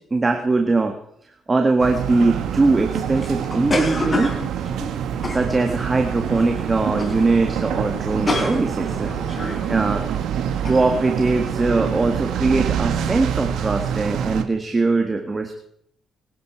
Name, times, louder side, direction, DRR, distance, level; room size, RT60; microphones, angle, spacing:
voice 1, 0.1-0.9 1.5-4.3 5.3-9.1 9.7-10.1 10.7-15.6, right 3 dB, 25° right, 4 dB, 1.8 m, -21 dB
sound 1, 1.8-14.4, right 8 dB, 80° right, 1.6 m, -26 dB
sound 2, 3.2-5.9 6.4-6.6 6.9-7.2 7.5-7.6 7.9-9.7 10.1-10.2 10.6-10.8, left 2 dB, 30° left, 3.5 m, -28 dB
23.5 x 11.0 x 4.7 m, 0.71 s
cardioid pair, 90°, 0 cm